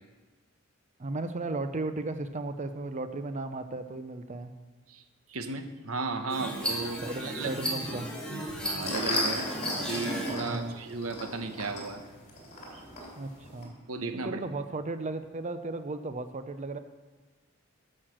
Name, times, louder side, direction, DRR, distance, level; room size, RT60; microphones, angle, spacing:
voice 1, 1.0-4.5 7.0-8.2 10.4-10.8 13.2-13.7 14.2-16.8, right 2 dB, 35° right, 10 dB, 0.6 m, -35 dB
voice 2, 5.3-7.6 8.6-9.5 9.7-12.0 12.7-12.8 13.9-14.4, right 3 dB, 80° right, 7 dB, 1.0 m, -35 dB
sound 1, 6.3-10.4, equal, 5° left, 1.8 m, -35 dB
sound 2, 8.5-13.7, left 1 dB, 35° left, 3.1 m, -36 dB
12.0 x 6.4 x 6.3 m, 1.3 s
head